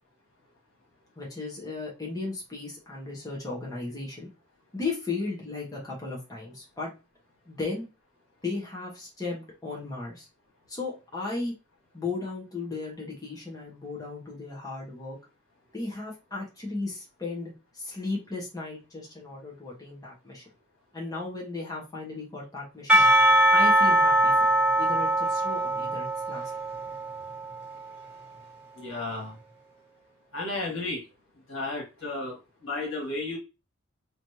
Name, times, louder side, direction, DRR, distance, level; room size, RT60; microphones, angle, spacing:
voice 1, 1.2-4.3 4.7-6.9 7.5-7.9 8.4-10.3 10.7-11.5 11.9-15.2 15.7-20.4 20.9-23.0 23.5-24.5 24.7-26.5, left 3 dB, 20° left, 1.2 m, -35 dB
Percussion / Church bell, 22.9-28.0, right 1 dB, 5° right, 2.1 m, -22 dB
voice 2, 28.8-29.4 30.3-31.0 31.5-33.4, left 2 dB, 65° left, 1.8 m, -33 dB
3.2 x 3.1 x 2.7 m
head